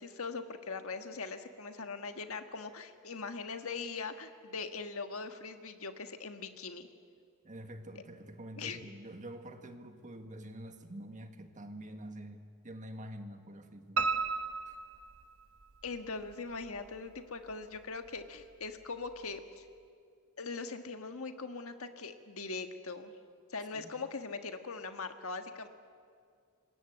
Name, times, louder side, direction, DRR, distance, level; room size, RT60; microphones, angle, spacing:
voice 1, 0.0-6.9 8.6-8.8 15.8-19.6 20.4-23.1 23.5-25.7, left 4 dB, 65° left, 7 dB, 1.6 m, -41 dB
voice 2, 7.4-14.1 14.7-14.8 23.7-23.9, right 1 dB, 35° right, 6 dB, 1.7 m, -47 dB
Piano, 14.0-15.9 16.3-17.2 17.5-17.6 18.1-18.2 18.4-18.5, right 4 dB, 65° right, 1.1 m, -34 dB
26.5 x 21.0 x 8.1 m, 2.2 s
head